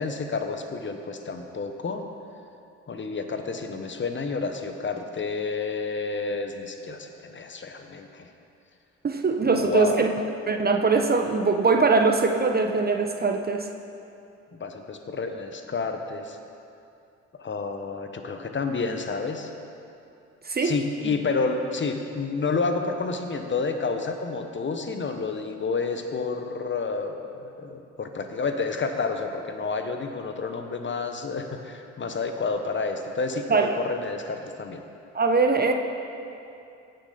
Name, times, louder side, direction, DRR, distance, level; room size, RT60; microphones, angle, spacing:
voice 1, 0.0-2.1 2.9-8.3 9.4-10.1 14.5-16.4 17.4-19.5 20.6-34.8, left 4 dB, 30° left, 6 dB, 1.0 m, -30 dB
voice 2, 9.0-10.1 10.5-13.7 20.5-20.7 33.5-33.7 35.1-35.7, right 4 dB, 25° right, 4 dB, 0.8 m, -22 dB
15.5 x 6.6 x 4.0 m, 2.7 s
hypercardioid pair, 55°, 36 cm